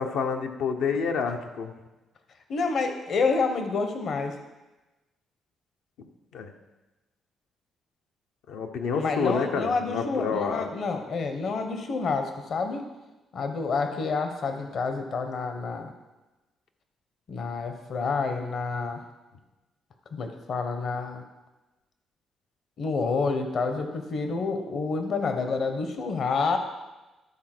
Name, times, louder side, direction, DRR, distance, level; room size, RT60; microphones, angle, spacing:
voice 1, 0.0-1.7 6.0-6.1 6.3-6.5 8.5-10.7, left 5 dB, 80° left, 4 dB, 1.0 m, -28 dB
voice 2, 2.5-4.4 8.9-12.8 13.3-15.9 17.3-19.0 20.1-21.2 22.8-26.6, left 4 dB, 60° left, 6 dB, 1.1 m, -28 dB
11.5 x 4.3 x 6.1 m, 1.1 s
cardioid pair, 90°, 0 cm